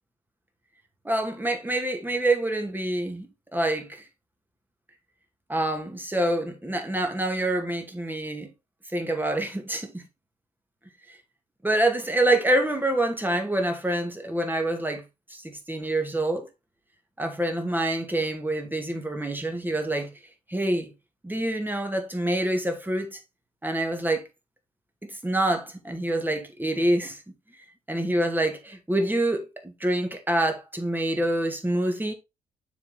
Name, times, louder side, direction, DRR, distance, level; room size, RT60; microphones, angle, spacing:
voice 1, 1.0-4.0 5.5-8.5 8.9-10.0 11.6-15.0 15.3-16.5 17.2-20.1 20.5-20.9 21.2-23.2 23.6-24.2 25.0-27.2 27.9-32.1, right 1 dB, 10° right, 2.4 m, -26 dB
7.1 x 4.8 x 3.9 m
hypercardioid pair, 45°, 18 cm